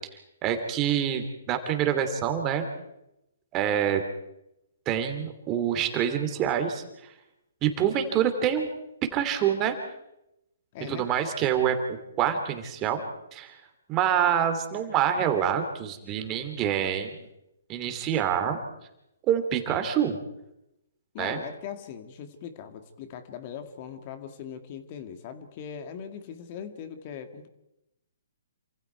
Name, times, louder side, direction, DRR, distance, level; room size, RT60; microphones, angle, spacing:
voice 1, 0.4-2.7 3.5-4.0 4.9-6.8 7.6-8.7 9.1-9.8 10.9-13.0 13.3-13.5 13.9-17.2 17.7-18.6 19.3-20.2 21.2-21.4, right 9 dB, 25° right, 6 dB, 2.9 m, -26 dB
voice 2, 10.7-11.1 21.1-27.5, left 8 dB, 40° left, 8 dB, 2.1 m, -40 dB
28.0 x 26.0 x 4.6 m, 0.86 s
hypercardioid pair, 140°, 0 cm